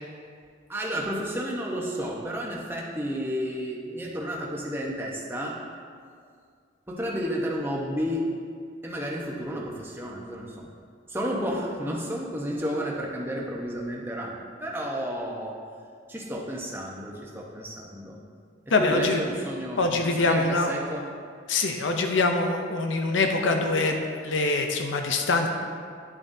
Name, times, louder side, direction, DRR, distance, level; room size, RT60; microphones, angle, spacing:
voice 1, 0.7-5.6 6.9-8.2 8.8-10.7 11.1-15.6 16.1-18.2 18.8-19.9 20.2-21.0, equal, 10° right, -3 dB, 0.9 m, -31 dB
voice 2, 18.7-19.2 19.8-20.7 21.5-25.5, left 3 dB, 80° left, 4 dB, 0.6 m, -24 dB
10.5 x 7.2 x 2.7 m, 2.1 s
head